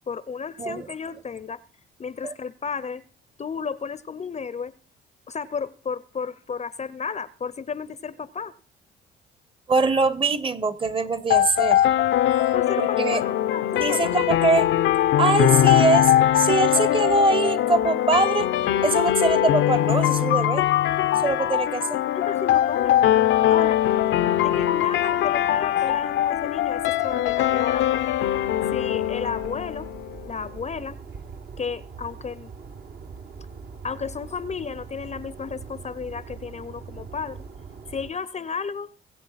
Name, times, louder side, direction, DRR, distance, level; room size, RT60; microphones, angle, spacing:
voice 1, 0.1-1.6 2.0-3.0 3.4-4.7 5.3-8.5 12.5-14.1 22.1-23.0 23.5-23.8 24.4-27.9 28.7-29.9 30.2-31.0 31.6-32.5 33.8-37.4 37.9-38.9, left 6 dB, 35° left, 0.7 m, -33 dB
voice 2, 9.7-11.8 12.8-13.2 13.7-14.7 15.2-20.7 21.2-22.0, right 3 dB, 25° right, 1.2 m, -23 dB
sound 1, 11.3-30.3, left 12 dB, 70° left, 0.7 m, -21 dB
sound 2, 23.5-38.1, right 5 dB, 55° right, 1.6 m, -43 dB
22.0 x 7.9 x 4.1 m
supercardioid pair, 75°, 20 cm